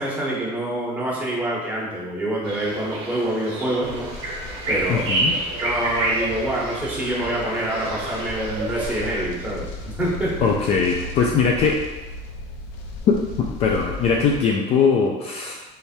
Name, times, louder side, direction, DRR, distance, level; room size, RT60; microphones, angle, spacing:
voice 1, 0.0-4.1 4.7-5.1 5.6-10.3, right 1 dB, 10° right, -6 dB, 1.1 m, -26 dB
sound 1, 2.4-9.2, right 2 dB, 30° right, 1.0 m, -28 dB
sound 2, 3.8-14.4, left 2 dB, 70° left, 0.7 m, -36 dB
voice 2, 4.9-5.4 10.4-11.8 13.1-15.6, left 5 dB, 40° left, 0 dB, 0.4 m, -21 dB
3.4 x 3.3 x 4.4 m, 1.1 s
cardioid pair, 165°, 17 cm